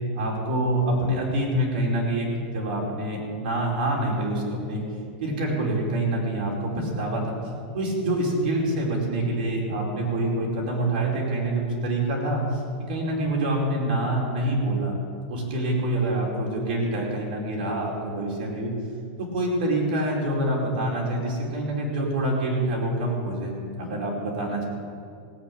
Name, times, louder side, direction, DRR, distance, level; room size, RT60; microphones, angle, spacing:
voice 1, 0.1-4.8 5.2-7.4 7.7-14.9 15.3-18.7 19.2-24.7, right 1 dB, 65° right, -2 dB, 4.9 m, -26 dB
17.5 x 9.0 x 8.6 m, 2.3 s
supercardioid pair, 165°, 5 cm